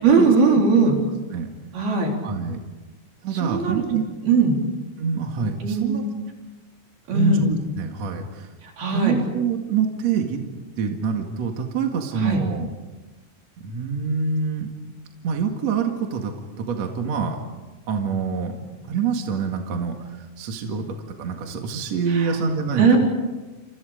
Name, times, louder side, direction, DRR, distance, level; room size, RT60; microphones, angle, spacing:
voice 1, 0.0-0.9 1.7-2.1 3.4-3.8 4.3-4.6 5.6-6.0 7.1-7.4 8.8-9.2 12.2-12.4 22.1-22.3 22.8-23.0, right 4 dB, 65° right, 0 dB, 5.9 m, -19 dB
voice 2, 2.2-2.6 3.2-4.1 5.0-6.0 7.1-8.5 8.9-10.4 10.8-12.7 13.6-14.7 15.2-17.4 17.9-20.1 20.4-23.0, right 5 dB, 50° right, 3 dB, 2.7 m, -25 dB
29.5 x 29.0 x 5.2 m, 1.2 s
omnidirectional pair, 4.8 m